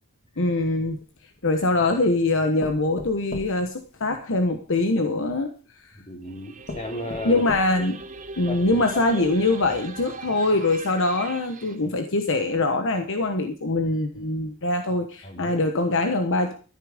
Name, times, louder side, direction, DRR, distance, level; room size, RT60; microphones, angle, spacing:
voice 1, 0.4-1.0 1.4-5.5 5.8-5.9 7.2-8.0 8.4-16.5, left 2 dB, 60° left, 6 dB, 1.2 m, -23 dB
sound 1, 0.9-1.8 2.6-4.6 5.5-5.6 6.2-6.3 6.7-8.0 8.5-8.6 8.9-9.0, left 2 dB, 45° left, 1.9 m, -38 dB
voice 2, 5.9-7.4 8.5-8.8 15.2-15.6, left 1 dB, 30° left, 2 dB, 3.1 m, -35 dB
sound 2, 6.2-11.8, right 4 dB, 35° right, 1.1 m, -40 dB
13.5 x 9.9 x 5.1 m, 0.38 s
head